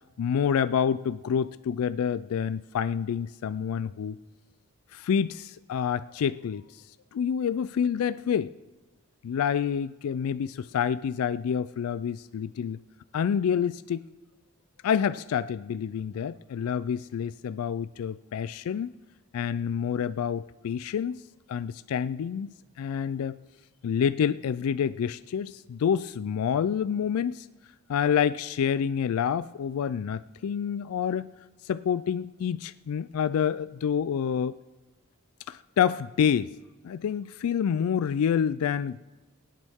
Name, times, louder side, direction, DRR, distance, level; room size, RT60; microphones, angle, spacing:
voice 1, 0.2-4.2 4.9-6.6 7.1-8.5 9.2-12.8 13.1-14.0 14.8-18.9 19.3-21.2 21.5-23.4 23.8-27.5 27.9-31.3 31.6-34.5 35.5-36.5 36.8-39.0, left 7 dB, 85° left, 15 dB, 0.3 m, -28 dB
24.5 x 8.3 x 3.6 m, 1.1 s
head